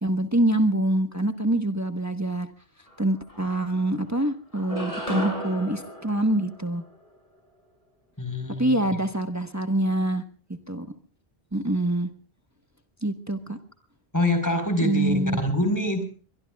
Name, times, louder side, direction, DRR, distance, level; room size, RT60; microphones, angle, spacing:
voice 1, 0.0-2.5 3.0-6.8 8.6-10.2 10.7-10.8 11.5-12.1 13.0-13.6 14.8-15.4, right 1 dB, 15° right, 7 dB, 1.2 m, -25 dB
sound 1, 2.9-3.0 3.3-4.1 4.5-7.1, equal, 35° left, 7.6 m, -35 dB
voice 2, 8.2-8.8 14.1-16.0, left 1 dB, 15° left, 7 dB, 4.4 m, -25 dB
24.5 x 22.0 x 2.4 m, 0.38 s
omnidirectional pair, 1.1 m